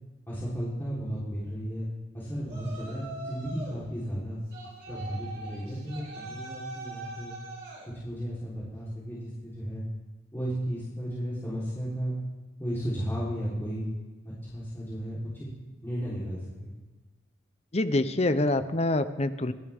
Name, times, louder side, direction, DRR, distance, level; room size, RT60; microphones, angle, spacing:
voice 1, 0.3-1.9 2.1-4.4 4.9-7.4 7.9-9.9 10.3-12.2 12.6-13.9 14.3-15.5 15.8-16.7, equal, 15° left, -9 dB, 3.8 m, -34 dB
Yell, 2.5-3.8 4.5-7.9, right 2 dB, 85° right, 5.7 m, -42 dB
voice 2, 17.7-19.5, left 2 dB, 35° left, 11 dB, 0.8 m, -26 dB
28.5 x 12.0 x 3.6 m, 1.2 s
head